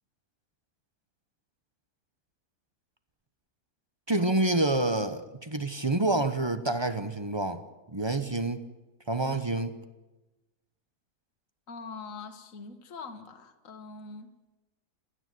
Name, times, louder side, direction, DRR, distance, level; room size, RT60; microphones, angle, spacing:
voice 1, 4.1-7.6 7.9-8.6 9.1-9.8, right 2 dB, 20° right, 10 dB, 0.7 m, -28 dB
voice 2, 11.7-14.3, left 4 dB, 55° left, 7 dB, 1.8 m, -43 dB
29.0 x 9.8 x 9.4 m, 1.1 s
omnidirectional pair, 1.7 m